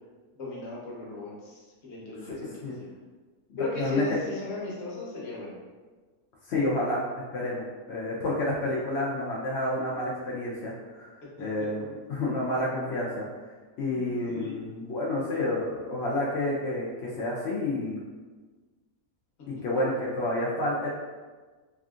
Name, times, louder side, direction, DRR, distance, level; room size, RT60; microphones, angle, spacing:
voice 1, 0.3-2.9 3.6-5.6 11.4-11.7 13.8-14.0 14.2-14.6, left 2 dB, 50° left, -5 dB, 1.0 m, -37 dB
voice 2, 2.2-2.8 3.8-4.1 6.5-7.0 7.3-7.6 7.9-11.1 11.4-11.8 12.1-13.3 13.8-18.0 19.5-20.9, left 1 dB, 85° left, -5 dB, 0.5 m, -29 dB
3.4 x 2.5 x 2.4 m, 1.4 s
omnidirectional pair, 1.7 m